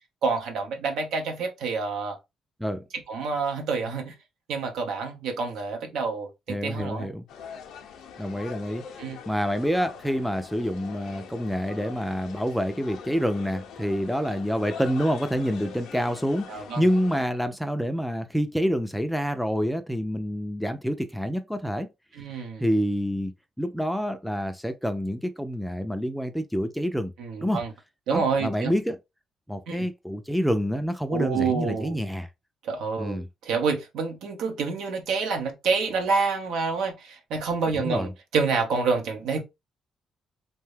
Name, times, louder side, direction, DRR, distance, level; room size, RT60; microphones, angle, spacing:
voice 1, 0.2-2.2 3.1-4.1 4.5-7.1 9.0-9.2 16.5-16.8 22.1-22.6 27.2-27.7 28.1-28.7 29.7-29.9 31.1-32.0 32.6-39.4, right 4 dB, 85° right, 0.8 m, -28 dB
voice 2, 6.5-7.2 8.2-8.8 9.3-21.9 22.6-27.1 27.4-27.6 28.1-29.0 29.5-32.3 33.0-33.3 37.8-38.1, equal, ahead, 0.4 m, -27 dB
sound 1, 7.3-17.2, left 7 dB, 85° left, 0.5 m, -43 dB
2.7 x 2.2 x 3.2 m
cardioid pair, 90°, 0 cm